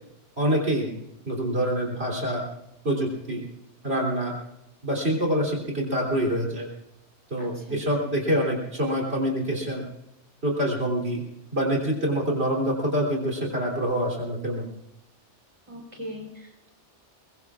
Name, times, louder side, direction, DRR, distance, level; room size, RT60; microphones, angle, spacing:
voice 1, 0.4-0.9 1.3-2.4 2.8-3.4 3.8-4.3 4.8-6.7 7.3-9.8 10.4-11.2 11.5-14.7, equal, 60° right, 0 dB, 3.4 m, -26 dB
voice 2, 7.4-7.8 15.7-16.7, equal, 25° right, 1 dB, 3.7 m, -40 dB
22.5 x 22.0 x 2.4 m, 0.88 s
omnidirectional pair, 1.2 m